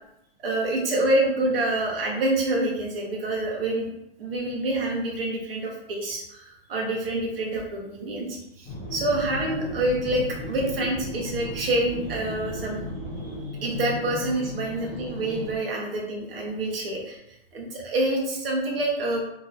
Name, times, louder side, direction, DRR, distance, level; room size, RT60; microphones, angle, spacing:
voice 1, 0.4-3.9 4.2-12.8 13.5-17.2 17.5-19.2, right 1 dB, 70° right, -2 dB, 1.1 m, -27 dB
sound 1, 8.6-15.6, left 1 dB, 10° left, 0.3 m, -35 dB
3.0 x 2.7 x 2.5 m, 0.80 s
hypercardioid pair, 165°, 30 cm